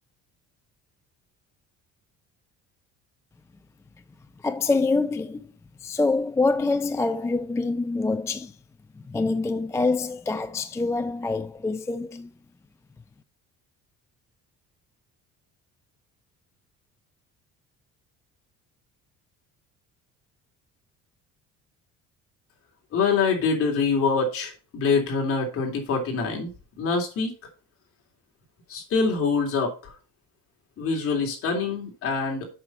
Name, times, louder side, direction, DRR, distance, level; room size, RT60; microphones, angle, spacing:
voice 1, 4.4-5.4 5.8-8.5 9.1-12.3, left 3 dB, 10° left, 0.3 m, -25 dB
voice 2, 22.9-26.5 26.8-27.3 28.7-29.7 30.8-32.5, left 4 dB, 50° left, 3.3 m, -25 dB
7.8 x 5.8 x 5.4 m
cardioid pair, 145°, 30 cm